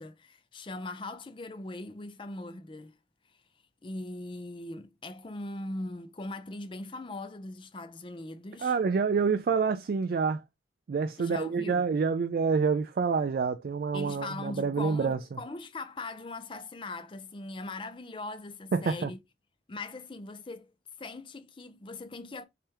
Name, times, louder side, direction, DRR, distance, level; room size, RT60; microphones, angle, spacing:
voice 1, 0.0-3.0 3.8-8.8 11.2-11.8 13.9-19.2 19.7-20.7 21.0-22.4, left 2 dB, 30° left, 0.5 m, -40 dB
voice 2, 8.6-10.4 10.9-15.2 18.7-19.1, right 5 dB, 55° right, 0.3 m, -27 dB
3.4 x 3.3 x 2.8 m
head